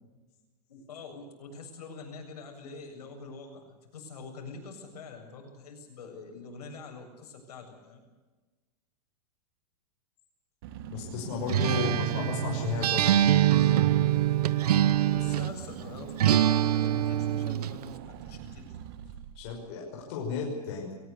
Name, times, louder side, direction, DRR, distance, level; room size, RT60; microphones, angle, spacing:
voice 1, 0.7-8.0 15.1-18.8, left 4 dB, 75° left, 3 dB, 7.6 m, -45 dB
Car / Engine, 10.6-19.8, right 9 dB, 35° right, 1.2 m, -44 dB
voice 2, 10.9-13.2 19.4-20.9, left 5 dB, 40° left, -1 dB, 5.6 m, -33 dB
Acoustic guitar, 11.5-15.6 16.2-17.8, right 11 dB, 75° right, 1.0 m, -24 dB
22.5 x 19.0 x 8.3 m, 1.2 s
supercardioid pair, 175°, 20 cm